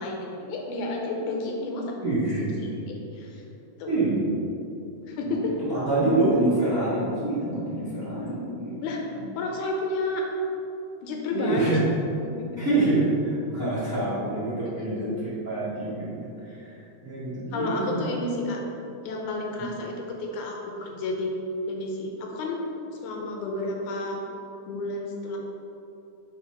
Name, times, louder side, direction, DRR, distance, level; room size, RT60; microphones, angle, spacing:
voice 1, 0.0-2.0 2.4-3.4 3.8-4.0 5.0-5.5 8.1-8.4 8.8-9.0 9.3-10.3 11.0-11.8 12.2-12.5 14.8-15.2 17.5-18.6 19.0-21.3 21.7-22.7 23.0-24.2 24.7-25.4, left 2 dB, 80° left, 0 dB, 2.1 m, -31 dB
voice 2, 2.0-2.7 3.9-4.4 5.2-5.4 5.7-8.8 9.1-9.3 11.3-11.8 12.6-18.1 19.6-19.7, right 2 dB, 40° right, -13 dB, 1.3 m, -26 dB
4.9 x 4.5 x 5.2 m, 2.8 s
omnidirectional pair, 3.5 m